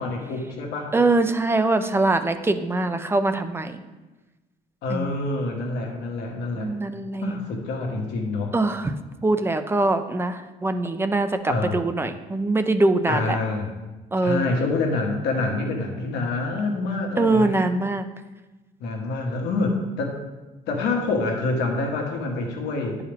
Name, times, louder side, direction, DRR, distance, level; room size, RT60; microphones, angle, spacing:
voice 1, 0.0-0.9 4.8-6.7 7.2-8.5 11.5-11.8 13.1-13.7 14.2-17.5 18.8-20.2 20.7-23.0, left 3 dB, 85° left, 1 dB, 1.5 m, -26 dB
voice 2, 0.9-3.8 4.9-5.2 6.5-7.3 8.5-8.9 9.2-13.4 14.1-14.5 17.2-18.1, right 2 dB, 15° right, 9 dB, 0.5 m, -23 dB
10.5 x 4.7 x 3.5 m, 1.2 s
cardioid pair, 110°, 17 cm